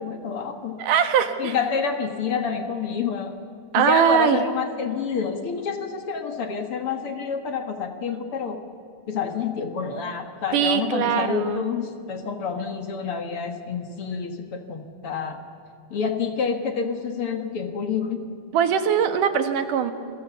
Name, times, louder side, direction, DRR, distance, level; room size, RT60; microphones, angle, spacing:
voice 1, 0.0-0.8 1.4-3.4 3.8-8.6 9.1-15.4 15.9-18.2, left 6 dB, 50° left, 6 dB, 2.1 m, -28 dB
voice 2, 0.8-1.6 3.7-4.4 10.5-11.6 18.5-19.9, right 8 dB, 85° right, 8 dB, 3.1 m, -21 dB
29.0 x 22.5 x 7.1 m, 2.6 s
omnidirectional pair, 3.6 m